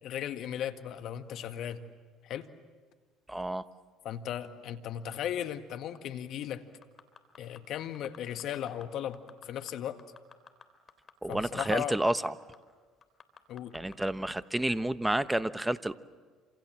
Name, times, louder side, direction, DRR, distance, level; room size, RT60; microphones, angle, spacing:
voice 1, 0.0-1.8 2.2-2.5 4.0-6.6 7.4-10.0 11.3-12.0 13.5-13.7, left 10 dB, 65° left, 8 dB, 1.8 m, -36 dB
voice 2, 3.3-3.6 11.2-12.3 13.7-16.0, right 1 dB, 10° right, 14 dB, 1.1 m, -30 dB
sound 1, 6.8-7.6 7.9-8.8 9.1-9.7 10.0-12.3 12.5-12.6 13.0-14.1 14.6-14.7, left 6 dB, 40° left, 3.5 m, -51 dB
28.0 x 27.0 x 7.6 m, 1.5 s
hypercardioid pair, 70°, 0 cm